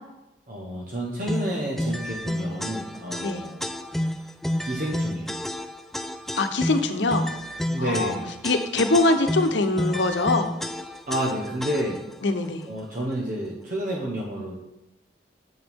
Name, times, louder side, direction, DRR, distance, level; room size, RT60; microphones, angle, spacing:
voice 1, 0.5-3.6 4.6-5.3 7.7-8.3 11.1-12.0 12.7-14.5, equal, 50° right, -3 dB, 1.2 m, -30 dB
sound 1, 1.3-12.1, left 1 dB, ahead, 0.3 m, -30 dB
voice 2, 6.4-7.2 7.8-8.1 8.4-10.5 12.2-12.7, left 2 dB, 85° left, 8 dB, 0.9 m, -23 dB
9.0 x 7.9 x 3.6 m, 0.96 s
head